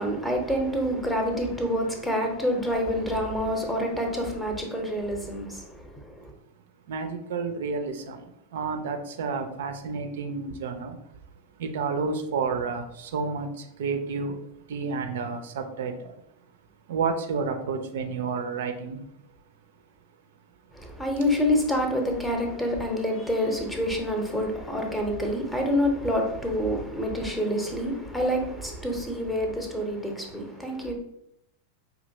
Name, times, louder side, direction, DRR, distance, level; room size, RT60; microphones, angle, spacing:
voice 1, 0.0-6.3 20.7-30.9, equal, 5° left, 2 dB, 0.7 m, -27 dB
voice 2, 6.9-11.0 11.6-14.4 14.7-16.2 16.9-19.0, right 5 dB, 55° right, 6 dB, 0.4 m, -30 dB
4.9 x 2.8 x 2.7 m, 0.78 s
figure-of-eight pair, 90°, 0 cm